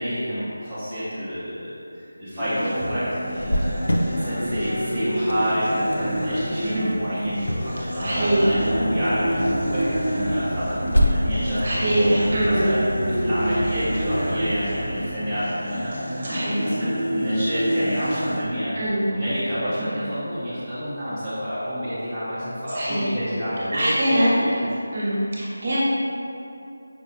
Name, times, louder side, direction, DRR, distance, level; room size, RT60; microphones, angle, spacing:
voice 1, 0.0-11.7 12.4-15.9 16.3-18.7 19.1-24.7 25.1-25.2, equal, ahead, -23 dB, 0.5 m, -28 dB
sound 1, 2.4-18.4, equal, 15° right, 1.2 m, -28 dB
Cricket, 3.4-14.8, equal, 90° left, 0.4 m, -30 dB
sound 2, 8.0-15.1, equal, 40° left, 0.6 m, -32 dB
voice 2, 8.0-8.5 11.6-12.6 16.2-16.6 18.7-19.0 22.7-23.0 23.7-24.4 24.9-25.8, right 1 dB, 35° right, -8 dB, 0.8 m, -23 dB
4.8 x 2.2 x 2.5 m, 2.7 s
figure-of-eight pair, 175°, 0 cm